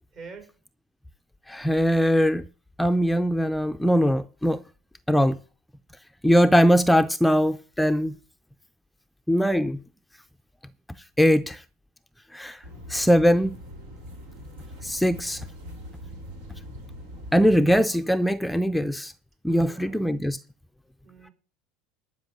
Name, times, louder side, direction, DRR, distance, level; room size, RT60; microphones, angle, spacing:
voice 1, 0.1-0.6 19.5-20.0 21.0-21.3, right 4 dB, 50° right, 4.5 m, -45 dB
voice 2, 1.5-2.4 2.8-4.6 5.1-5.4 6.2-8.1 9.3-9.8 11.2-11.6 12.3-12.6 12.9-13.6 14.8-15.4 17.3-19.1 19.4-20.4, equal, 5° left, 0.5 m, -21 dB
sound 1, 12.6-17.8, equal, 80° right, 3.1 m, -42 dB
11.5 x 5.3 x 8.4 m
hypercardioid pair, 85°, 0 cm